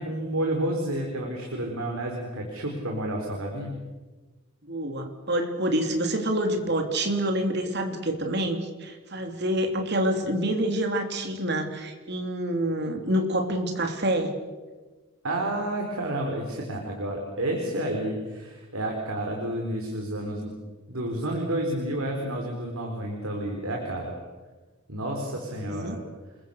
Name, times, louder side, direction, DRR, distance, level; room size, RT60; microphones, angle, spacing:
voice 1, 0.0-3.8 15.2-20.5 20.9-24.1 24.9-26.0, right 1 dB, 80° right, 0 dB, 4.2 m, -30 dB
voice 2, 4.6-14.3 25.6-26.0, right 1 dB, 50° right, 5 dB, 3.3 m, -27 dB
28.5 x 21.5 x 6.6 m, 1.3 s
head